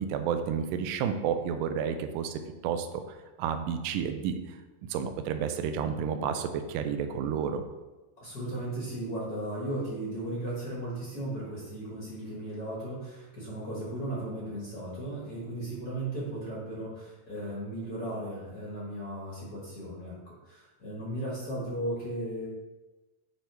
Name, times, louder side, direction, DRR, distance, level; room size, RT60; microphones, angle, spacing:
voice 1, 0.0-2.9 3.4-4.4 4.9-7.6, right 7 dB, 80° right, 7 dB, 1.9 m, -30 dB
voice 2, 8.2-22.5, right 1 dB, 80° left, -5 dB, 0.8 m, -36 dB
8.0 x 2.8 x 4.5 m, 1.1 s
omnidirectional pair, 4.1 m